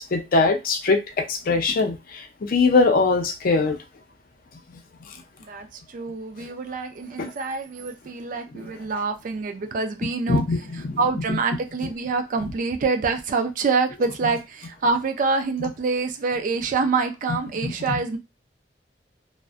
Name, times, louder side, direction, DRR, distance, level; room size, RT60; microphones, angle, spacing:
voice 1, 0.0-3.8 4.7-4.8 6.4-6.5 7.2-7.3 8.5-8.7 10.3-11.0 11.3-11.4 17.6-18.2, left 3 dB, 55° left, 6 dB, 0.5 m, -22 dB
voice 2, 5.5-18.2, right 4 dB, 50° right, 7 dB, 0.4 m, -26 dB
2.5 x 2.1 x 2.4 m, 0.24 s
head